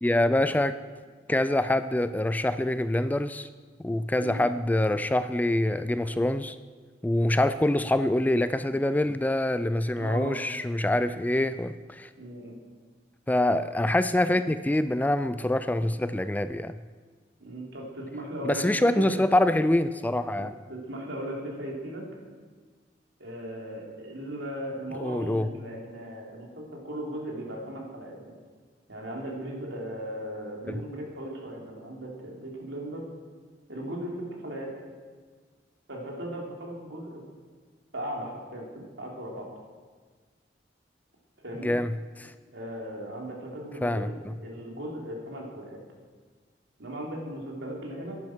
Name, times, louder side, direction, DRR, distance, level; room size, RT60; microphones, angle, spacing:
voice 1, 0.0-0.8 1.3-3.5 3.8-6.6 7.0-12.1 13.3-16.8 18.4-20.5 25.0-25.5 30.7-30.8 41.6-42.3 43.8-44.3, left 1 dB, 10° left, 12 dB, 0.3 m, -25 dB
voice 2, 10.0-10.4 12.2-12.6 17.4-19.4 20.4-20.5 20.7-22.0 23.2-28.2 28.9-33.0 33.7-34.7 35.9-37.2 37.9-39.5 41.4-41.8 42.5-45.8 46.8-48.2, right 1 dB, 85° right, -2 dB, 3.3 m, -37 dB
13.5 x 10.5 x 6.2 m, 1.5 s
head